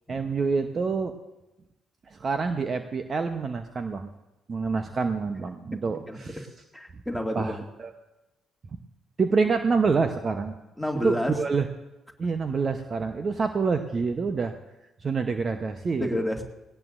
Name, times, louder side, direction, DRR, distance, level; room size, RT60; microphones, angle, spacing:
voice 1, 0.1-1.1 2.1-4.1 4.5-6.5 7.3-7.9 9.2-10.5 11.0-11.7 12.2-14.5 15.0-16.1, right 4 dB, 40° right, 8 dB, 0.9 m, -27 dB
voice 2, 6.7-7.6 10.8-11.4 16.0-16.4, left 1 dB, ahead, 1 dB, 2.3 m, -30 dB
19.0 x 18.0 x 2.6 m, 0.99 s
figure-of-eight pair, 45°, 0 cm